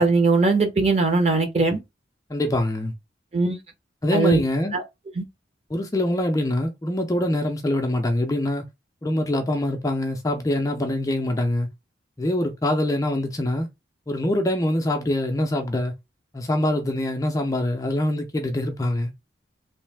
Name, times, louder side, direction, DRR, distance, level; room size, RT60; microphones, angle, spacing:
voice 1, 0.0-1.8 3.3-3.6 4.1-4.4 4.7-4.8 5.2-5.3, right 3 dB, 35° right, 0.8 m, -20 dB
voice 2, 2.3-2.9 4.0-4.8 5.7-8.6 9.0-11.7 12.2-13.7 14.1-15.9 16.3-19.1, left 1 dB, 20° left, 0.4 m, -24 dB
3.1 x 2.6 x 3.3 m
head